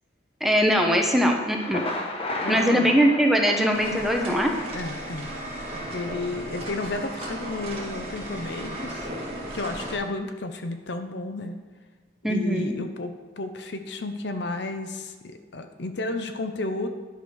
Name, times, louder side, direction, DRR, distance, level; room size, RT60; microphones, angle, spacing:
voice 1, 0.4-1.8 2.5-4.5 12.2-12.8, equal, ahead, 2 dB, 0.8 m, -21 dB
Thunder, 1.4-5.4, left 2 dB, 30° left, 1.0 m, -34 dB
voice 2, 2.4-2.9 4.7-5.3 5.5-5.6 5.9-9.1 9.5-11.6 12.3-16.9, left 2 dB, 60° left, 7 dB, 0.7 m, -32 dB
sound 1, 3.7-10.0, right 1 dB, 30° right, 1.9 m, -35 dB
10.5 x 5.1 x 6.3 m, 1.5 s
head